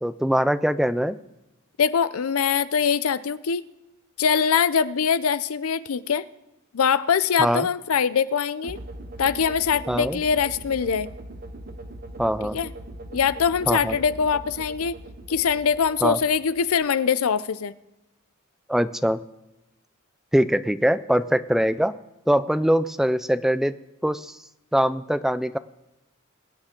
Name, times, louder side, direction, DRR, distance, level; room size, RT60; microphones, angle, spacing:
voice 1, 0.0-1.2 7.4-7.7 9.9-10.2 12.2-12.6 13.7-14.0 16.0-16.2 18.7-19.2 20.3-21.9 22.3-23.8 24.0-24.4 24.7-25.6, equal, ahead, 13 dB, 0.4 m, -22 dB
voice 2, 1.8-3.6 4.2-6.2 6.7-8.8 9.2-11.1 12.5-12.7 13.1-14.9 15.3-17.7, left 6 dB, 75° left, 16 dB, 0.5 m, -23 dB
sound 1, 8.6-16.8, right 1 dB, 45° right, 0.9 m, -40 dB
22.0 x 9.0 x 3.7 m, 0.98 s
head